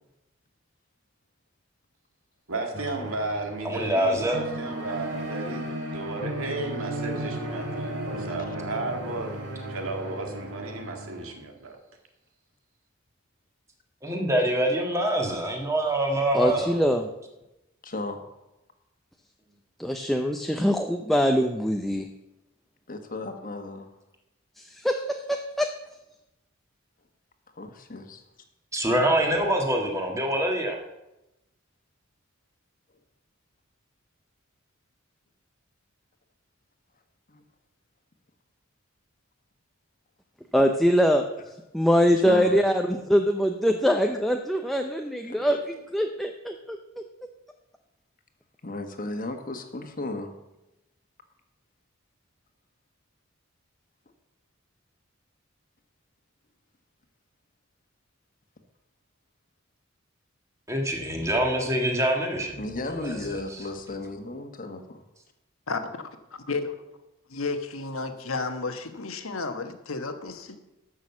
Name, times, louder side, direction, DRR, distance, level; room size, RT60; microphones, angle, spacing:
voice 1, 2.5-9.3 9.7-11.8, right 2 dB, 85° right, 4 dB, 2.0 m, -34 dB
sound 1, 2.7-11.3, right 1 dB, 60° right, 3.1 m, -35 dB
voice 2, 3.6-4.4 14.0-16.8 28.7-30.8 60.7-62.6 63.0-63.1 63.5-63.6, right 1 dB, 15° right, 1 dB, 1.8 m, -25 dB
voice 3, 16.3-17.1 19.8-22.1 24.6-25.7 40.5-41.2 41.7-46.8, equal, ahead, 4 dB, 0.6 m, -23 dB
voice 4, 17.8-18.2 22.9-23.9 27.5-28.2 37.3-37.4 42.2-42.6 45.2-45.6 48.6-50.3 62.6-65.0, left 2 dB, 40° left, 5 dB, 1.4 m, -35 dB
voice 5, 66.3-66.8 67.3-70.6, left 3 dB, 85° left, 7 dB, 1.3 m, -32 dB
13.0 x 6.3 x 7.2 m, 0.94 s
head